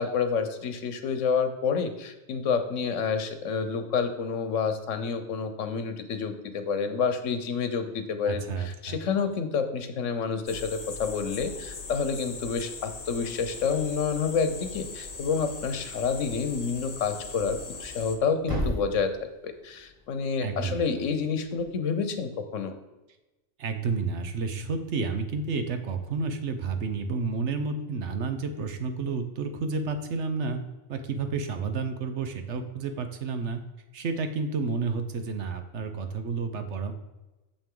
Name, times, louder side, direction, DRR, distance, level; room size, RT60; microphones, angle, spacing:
voice 1, 0.0-22.7, left 5 dB, 85° left, 8 dB, 1.2 m, -29 dB
voice 2, 8.2-9.0 20.4-20.8 23.6-30.6 30.9-33.6 33.9-36.9, right 4 dB, 70° right, 7 dB, 1.1 m, -30 dB
sound 1, 10.5-18.2, left 4 dB, 35° left, 0.9 m, -40 dB
Thump thud, 17.6-21.7, equal, 25° right, 2.5 m, -37 dB
8.9 x 6.8 x 3.8 m, 1.1 s
omnidirectional pair, 1.3 m